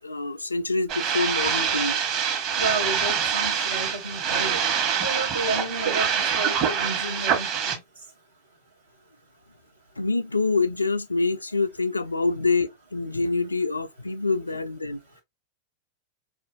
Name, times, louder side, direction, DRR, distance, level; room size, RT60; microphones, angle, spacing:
voice 1, 0.0-2.0 10.0-15.0, left 3 dB, 80° left, 0.3 m, -26 dB
sound 1, 0.9-7.8, right 7 dB, 40° right, 1.0 m, -25 dB
voice 2, 2.6-4.6 5.0-6.1 6.4-7.5, right 2 dB, 80° right, 0.9 m, -31 dB
4.2 x 2.5 x 2.5 m
figure-of-eight pair, 90°, 0 cm